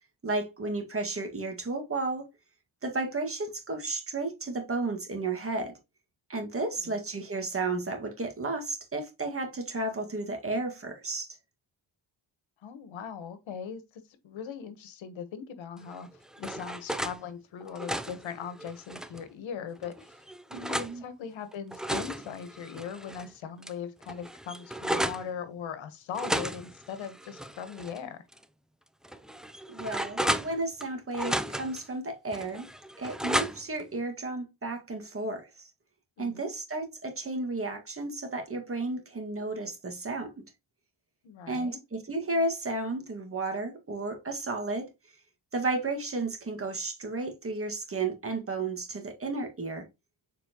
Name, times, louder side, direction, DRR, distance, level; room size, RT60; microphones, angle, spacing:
voice 1, 0.2-2.3 2.8-5.7 6.3-11.4 20.5-21.0 29.7-32.7 33.0-35.7 36.2-40.4 41.5-44.9 45.5-49.9, right 2 dB, 30° right, 1.9 m, -33 dB
voice 2, 12.6-20.2 20.5-28.2 36.2-36.5 41.2-41.8, left 7 dB, 80° left, 1.3 m, -40 dB
sound 1, 15.9-17.2 17.6-19.3 19.8-20.9 21.5-23.3 23.6-23.7 24.0-25.3 26.1-28.0 28.3-28.4 29.0-30.9 31.1-31.8 32.3-33.8, equal, ahead, 0.4 m, -34 dB
7.0 x 4.5 x 2.9 m
cardioid pair, 95°, 45 cm